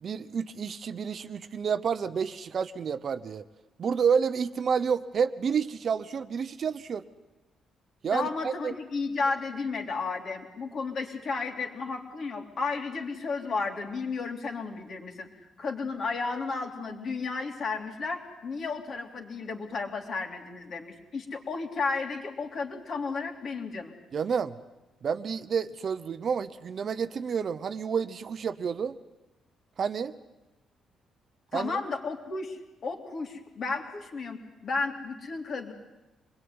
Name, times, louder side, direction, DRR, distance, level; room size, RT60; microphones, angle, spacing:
voice 1, 0.0-3.4 3.8-7.0 8.0-8.7 24.1-24.6 25.0-29.0 29.8-30.2 31.5-31.8, right 6 dB, 40° right, 12 dB, 0.9 m, -29 dB
voice 2, 8.1-15.3 15.6-23.9 31.5-35.7, left 4 dB, 45° left, 4 dB, 3.4 m, -33 dB
26.0 x 21.0 x 9.7 m, 1.1 s
cardioid pair, 150°, 0 cm